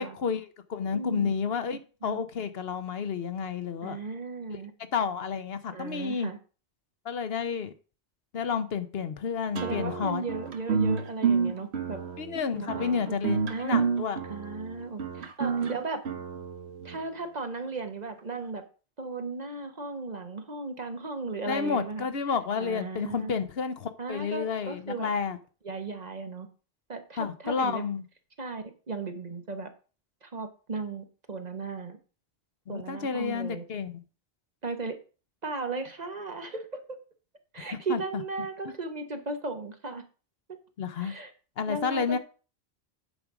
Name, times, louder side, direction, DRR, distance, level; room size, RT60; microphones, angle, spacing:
voice 1, 0.0-4.0 4.5-4.6 4.9-6.3 7.0-7.7 8.3-10.2 12.2-14.2 21.5-25.4 27.2-28.0 32.7-34.0 37.9-38.2 40.8-41.1 41.6-42.2, left 6 dB, 65° left, 11 dB, 1.0 m, -31 dB
voice 2, 0.9-1.3 2.0-2.2 3.8-4.7 5.7-6.4 9.6-12.0 12.5-13.2 13.5-13.9 14.2-16.0 16.8-18.7 19.0-22.1 22.6-23.4 24.0-25.1 25.6-26.5 26.9-27.8 28.4-29.7 30.2-32.0 32.7-33.7 34.6-35.0 35.4-37.0 37.5-40.0 40.5-40.6 41.0-41.3 41.7-42.2, right 3 dB, 40° right, 7 dB, 1.1 m, -36 dB
sound 1, 9.6-17.0, right 6 dB, 80° right, 1.3 m, -29 dB
8.9 x 5.1 x 6.0 m, 0.36 s
omnidirectional pair, 1.1 m